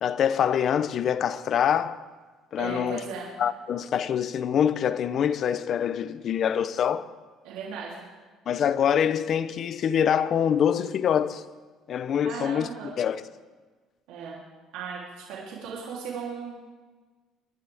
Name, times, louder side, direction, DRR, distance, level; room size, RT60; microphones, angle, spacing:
voice 1, 0.0-2.0 2.5-3.0 3.4-7.1 8.5-11.4 11.9-12.7 13.0-13.2, left 8 dB, 50° left, 0.7 m, -25 dB
voice 2, 2.6-3.3 7.4-8.0 12.2-12.9 14.1-14.4 14.7-16.7, right 6 dB, 85° right, 3.3 m, -37 dB
24.0 x 11.5 x 3.6 m
cardioid pair, 105°, 0 cm